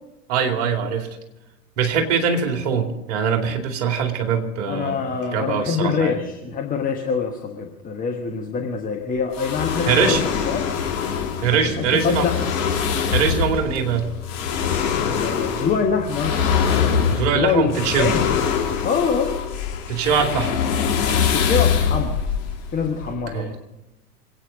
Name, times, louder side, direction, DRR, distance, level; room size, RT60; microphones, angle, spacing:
voice 1, 0.3-1.1 1.8-5.0 5.3-6.2 9.9-10.2 11.4-12.3 13.1-14.1 17.1-18.1 19.9-20.5 23.0-23.6, right 6 dB, 45° right, 4 dB, 2.6 m, -22 dB
voice 2, 4.7-10.6 11.8-12.5 15.0-16.4 17.3-18.3 18.8-19.4 21.3-22.2 22.7-23.5, left 6 dB, 15° left, 2 dB, 1.3 m, -24 dB
sound 1, 9.3-23.2, left 7 dB, 45° left, 3.3 m, -23 dB
sound 2, 10.0-18.0, left 5 dB, 5° right, 2.0 m, -38 dB
sound 3, 11.4-14.1, right 3 dB, 25° right, 2.5 m, -39 dB
26.5 x 9.1 x 5.2 m, 0.95 s
figure-of-eight pair, 95°, 48 cm